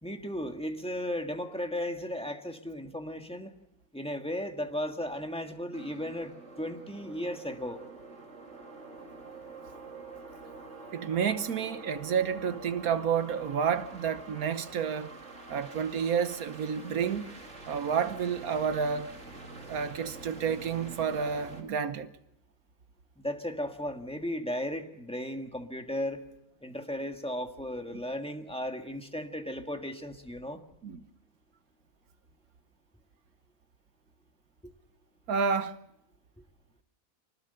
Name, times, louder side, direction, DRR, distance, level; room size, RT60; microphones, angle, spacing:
voice 1, 0.0-3.5 3.9-7.8 23.2-26.2 26.6-30.6 34.6-34.7, left 1 dB, 5° left, 1.6 m, -35 dB
sound 1, 5.7-21.6, right 3 dB, 50° right, 3.4 m, -47 dB
voice 2, 10.9-15.1 15.5-17.3 17.6-19.1 19.7-22.1 30.8-31.0 35.3-35.8, right 7 dB, 75° right, 1.5 m, -30 dB
25.0 x 19.5 x 6.8 m
omnidirectional pair, 1.6 m